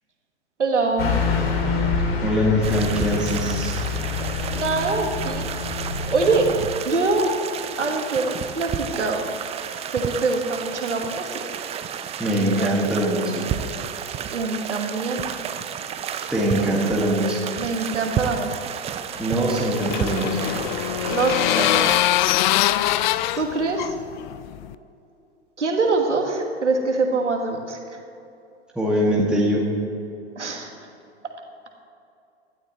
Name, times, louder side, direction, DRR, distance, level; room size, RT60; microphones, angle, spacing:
voice 1, 0.6-1.1 4.5-5.5 6.1-6.5 6.9-7.3 7.8-9.2 9.9-11.4 12.6-12.7 14.3-15.2 17.6-18.5 21.1-21.9 23.3-23.9 25.6-27.8 30.4-30.7, right 3 dB, 90° right, 3 dB, 1.7 m, -24 dB
Car passing by / Truck, 1.0-6.5, left 4 dB, 60° left, 2.4 m, -26 dB
voice 2, 2.2-3.8 12.2-13.5 16.3-17.4 19.2-20.5 28.8-29.7, equal, ahead, -5 dB, 2.0 m, -22 dB
sound 1, 2.6-22.0, right 8 dB, 20° right, 0.5 m, -32 dB
sound 2, 19.2-24.7, left 15 dB, 45° left, 0.5 m, -23 dB
17.0 x 12.0 x 3.1 m, 2.6 s
hypercardioid pair, 105°, 34 cm